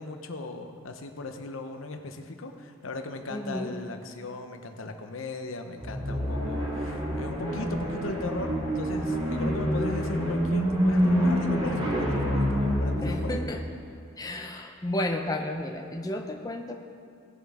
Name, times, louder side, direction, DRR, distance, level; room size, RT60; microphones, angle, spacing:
voice 1, 0.0-13.4, left 2 dB, 90° left, 6 dB, 0.8 m, -37 dB
voice 2, 3.3-3.7 13.0-13.6 14.2-16.7, left 1 dB, 20° left, 3 dB, 0.7 m, -32 dB
sound 1, 5.8-13.4, equal, 25° right, 2.3 m, -27 dB
18.0 x 7.1 x 3.6 m, 2.3 s
head